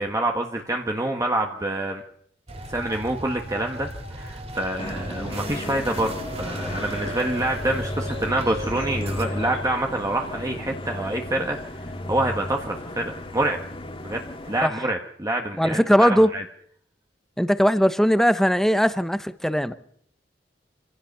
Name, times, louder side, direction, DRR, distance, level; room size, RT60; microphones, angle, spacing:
voice 1, 0.0-2.0 2.7-13.6 14.0-16.4, right 1 dB, 20° right, 1.5 m, -27 dB
sound 1, 2.5-9.3, right 1 dB, 35° right, 2.6 m, -36 dB
sound 2, 4.8-14.7, left 1 dB, 30° left, 2.3 m, -34 dB
voice 2, 15.6-16.3 17.4-19.7, equal, ahead, 1.0 m, -19 dB
26.0 x 16.0 x 6.8 m
head